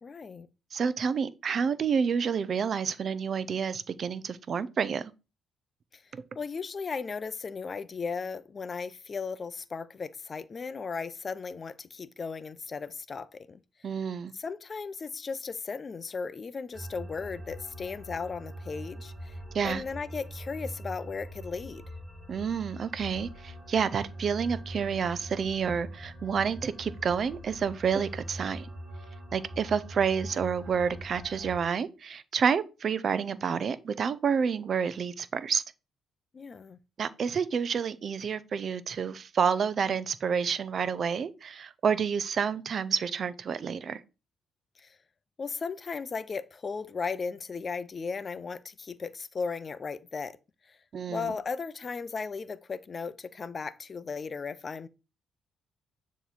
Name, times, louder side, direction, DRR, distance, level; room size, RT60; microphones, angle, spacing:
voice 1, 0.0-0.5 5.9-6.0 6.4-13.6 14.3-19.4 19.6-21.8 36.3-36.8 44.8-45.0 45.4-50.4 50.7-50.8 51.1-54.9, left 5 dB, 40° left, 0.5 m, -36 dB
voice 2, 0.7-5.1 6.1-6.2 13.8-14.3 19.5-19.8 22.3-28.7 29.3-35.6 37.0-44.0 50.9-51.3, right 6 dB, 50° right, 0.5 m, -29 dB
sound 1, 16.7-31.7, right 1 dB, 30° right, 1.5 m, -43 dB
9.1 x 3.0 x 4.1 m
cardioid pair, 90°, 0 cm